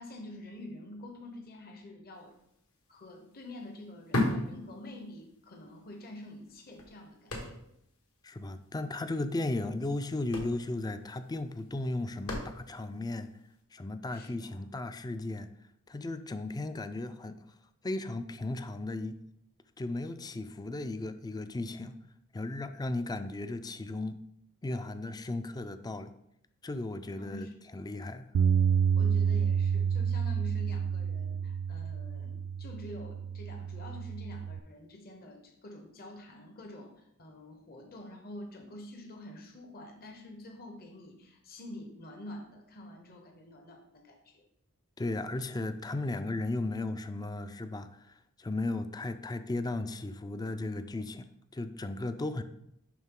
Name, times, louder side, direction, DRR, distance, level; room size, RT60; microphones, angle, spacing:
voice 1, 0.0-2.3 2.9-7.6 14.1-14.6 27.2-27.8 29.0-44.4, left 1 dB, 45° left, 3 dB, 0.9 m, -47 dB
sound 1, 2.4-2.5 2.8-5.4 5.7-5.8 6.4-8.0 8.2-8.3 8.6-8.8 9.7-9.8 10.1-13.0 13.5-13.6, left 1 dB, 75° left, 1.6 m, -35 dB
voice 2, 8.2-13.3 13.7-15.5 15.9-17.4 17.8-19.2 19.8-22.0 22.3-24.2 24.6-26.1 26.6-27.5 27.7-28.3 45.0-48.1 48.4-52.4, left 2 dB, 20° left, 10 dB, 0.4 m, -35 dB
Bass guitar, 28.3-34.6, right 7 dB, 80° right, 0.3 m, -29 dB
10.5 x 3.6 x 3.7 m, 0.76 s
head